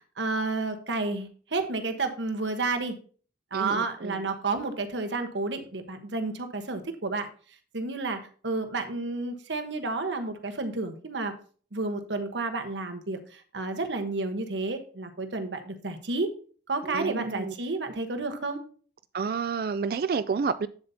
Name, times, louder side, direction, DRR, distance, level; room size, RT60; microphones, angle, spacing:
voice 1, 0.0-3.0 3.5-7.3 7.7-11.3 11.7-16.3 16.7-18.6, right 3 dB, 90° right, 1.2 m, -31 dB
voice 2, 3.5-4.3 16.8-17.5 19.1-20.7, right 5 dB, 55° right, 0.3 m, -30 dB
8.7 x 7.8 x 2.8 m
head